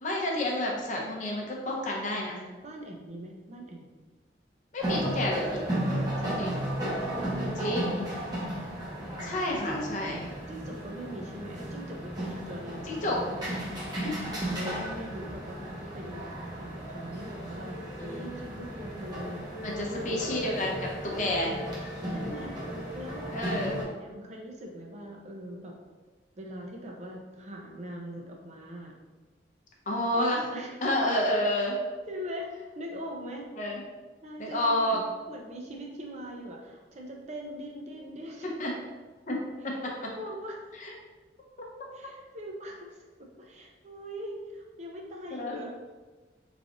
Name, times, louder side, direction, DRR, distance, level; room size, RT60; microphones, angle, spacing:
voice 1, 0.0-2.4 4.7-5.6 6.4-6.5 7.6-8.0 9.2-10.2 12.9-13.2 14.0-14.1 18.0-18.3 19.6-21.5 23.3-23.8 29.9-30.5 30.8-31.8 33.6-33.8 34.4-35.0 38.6-38.7 39.3-39.7 40.8-40.9 45.3-45.6, left 1 dB, 45° left, -1 dB, 0.7 m, -29 dB
voice 2, 2.6-3.9 6.2-6.6 7.1-8.3 9.0-9.3 9.6-10.2 10.5-13.5 14.2-16.3 16.6-19.4 19.8-20.2 22.1-22.6 22.9-23.3 24.0-25.7 26.4-28.9 30.1-30.2 30.5-30.8 32.1-33.5 34.2-38.5 39.6-40.7 41.9-45.7, equal, 40° right, 0 dB, 0.5 m, -41 dB
sound 1, 4.8-23.8, right 1 dB, 25° right, 0.9 m, -35 dB
3.3 x 2.4 x 3.8 m, 1.3 s
head